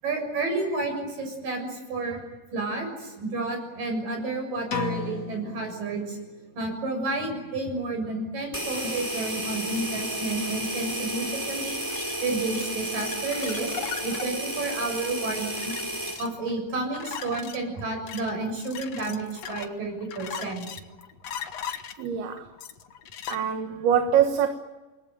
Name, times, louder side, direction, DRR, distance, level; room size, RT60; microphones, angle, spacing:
voice 1, 0.0-2.2 2.5-6.2 6.5-11.8 12.2-15.6 16.2-20.7, right 3 dB, 55° right, 4 dB, 8.5 m, -31 dB
sound 1, 4.7-6.6, left 5 dB, 35° left, 2.0 m, -34 dB
sound 2, 8.5-16.2, right 1 dB, 5° right, 4.9 m, -32 dB
sound 3, 11.9-23.4, left 8 dB, 60° left, 1.9 m, -39 dB
voice 2, 22.0-22.5 23.3-24.5, right 9 dB, 75° right, 6 dB, 3.4 m, -23 dB
29.0 x 21.0 x 9.2 m, 1.2 s
omnidirectional pair, 4.6 m